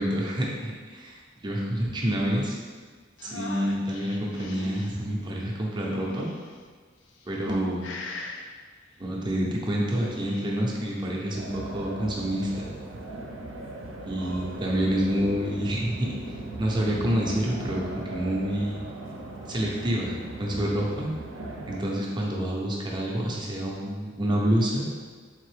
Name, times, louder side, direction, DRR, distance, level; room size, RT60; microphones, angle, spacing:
voice 1, 0.0-2.6 3.2-6.3 7.3-7.9 9.0-12.7 14.0-16.1 16.6-18.8 19.5-20.1 20.4-21.1 21.7-24.9, equal, 25° right, -3 dB, 0.6 m, -28 dB
sound 1, 3.2-4.9 5.7-6.6 7.2-7.6 7.8-8.4 9.8-10.5, left 3 dB, 65° left, 0.5 m, -40 dB
sound 2, 11.3-21.8, right 2 dB, 85° right, 0.6 m, -39 dB
3.6 x 3.5 x 3.3 m, 1.5 s
head